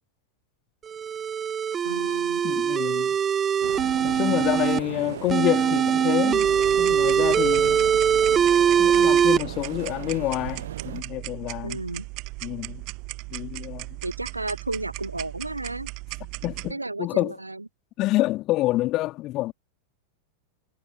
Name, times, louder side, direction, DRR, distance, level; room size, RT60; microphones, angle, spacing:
sound 1, 0.9-4.8 5.3-9.4, right 7 dB, 20° right, 0.7 m, -22 dB
voice 1, 1.8-2.5 11.6-12.1 14.0-15.9 16.7-17.7, right 2 dB, 85° right, 1.0 m, -33 dB
voice 2, 2.4-3.2 4.0-6.5 6.8-7.8 8.8-11.8 12.4-12.8 13.3-14.0 16.4-17.3 18.0-19.5, left 17 dB, 35° left, 2.9 m, -27 dB
sound 2, 3.6-11.0, right 10 dB, 60° right, 0.7 m, -36 dB
sound 3, 6.3-16.7, right 28 dB, 45° right, 7.3 m, -37 dB
figure-of-eight pair, 90°, 0 cm